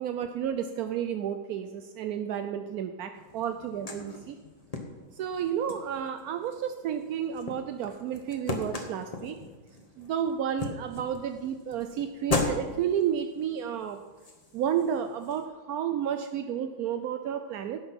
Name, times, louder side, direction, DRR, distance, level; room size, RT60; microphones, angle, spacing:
voice 1, 0.0-4.4 5.1-9.4 10.0-14.0 14.5-17.8, right 9 dB, 70° right, 7 dB, 0.9 m, -31 dB
sound 1, 3.1-15.5, left 2 dB, 25° left, 1.0 m, -38 dB
16.0 x 6.6 x 5.8 m, 1.3 s
omnidirectional pair, 2.1 m